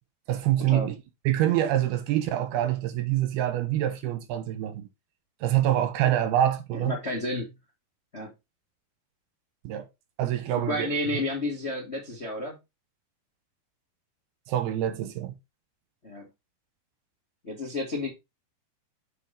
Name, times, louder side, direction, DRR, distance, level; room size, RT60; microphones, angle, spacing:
voice 1, 0.3-1.0 1.3-4.9 5.4-6.9 9.6-9.9 10.2-10.9 14.5-15.3, right 12 dB, 85° right, 3.1 m, -25 dB
voice 2, 6.7-7.5 8.1-8.3 10.7-12.6 16.0-16.3 17.4-18.1, left 1 dB, 40° left, 0.9 m, -31 dB
7.5 x 5.6 x 3.8 m
omnidirectional pair, 4.5 m